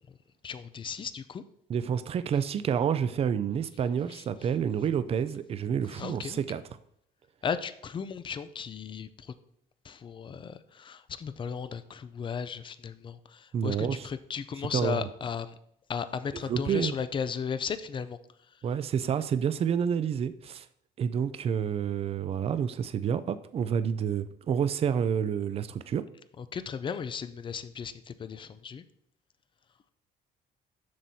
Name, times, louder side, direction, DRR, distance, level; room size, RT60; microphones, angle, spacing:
voice 1, 0.4-1.4 4.1-4.2 6.0-6.4 7.4-9.3 9.8-15.5 15.9-18.2 26.4-28.8, left 6 dB, 30° left, 13 dB, 0.4 m, -35 dB
voice 2, 1.7-6.6 13.5-14.1 14.7-15.1 16.3-17.0 18.6-20.7 21.0-26.0, right 8 dB, 35° right, 13 dB, 0.4 m, -29 dB
7.5 x 6.1 x 2.7 m, 0.71 s
cardioid pair, 110°, 17 cm